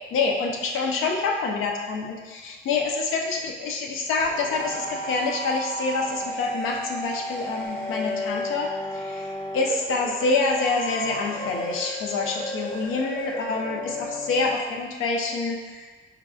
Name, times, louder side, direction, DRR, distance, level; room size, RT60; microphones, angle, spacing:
voice 1, 0.1-15.8, left 3 dB, 85° left, 1 dB, 0.5 m, -27 dB
sound 1, 4.2-14.6, left 1 dB, 25° left, 0.6 m, -33 dB
4.6 x 2.4 x 2.3 m, 1.3 s
cardioid pair, 90°, 20 cm